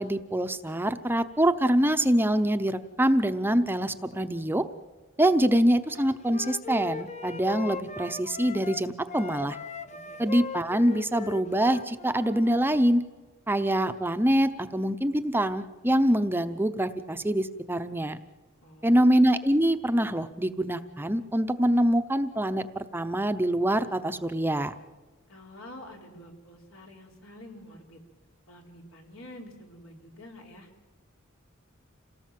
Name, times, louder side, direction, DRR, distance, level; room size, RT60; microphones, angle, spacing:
voice 1, 0.0-4.7 5.2-9.6 10.2-13.0 13.5-18.2 18.8-24.7, right 1 dB, 10° right, 9 dB, 0.7 m, -25 dB
Wind instrument woodwind instrument, 5.9-8.8 9.1-12.6, left 5 dB, 35° left, 1.0 m, -39 dB
voice 2, 9.9-10.2 18.6-19.0 25.3-28.0 28.5-30.7, left 1 dB, 80° left, 1 dB, 4.4 m, -48 dB
27.5 x 18.0 x 7.6 m, 1.3 s
head